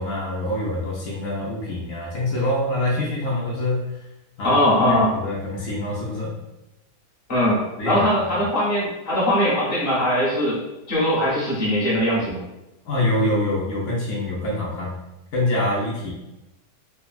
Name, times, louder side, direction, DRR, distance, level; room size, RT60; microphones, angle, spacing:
voice 1, 0.0-3.8 4.4-4.6 5.1-6.4 7.8-8.0 12.8-14.9 15.3-16.1, left 1 dB, 70° left, -5 dB, 0.6 m, -25 dB
voice 2, 4.4-5.1 7.3-10.6 10.9-12.4, equal, 40° left, -6 dB, 1.1 m, -20 dB
3.3 x 2.0 x 2.3 m, 0.95 s
omnidirectional pair, 1.7 m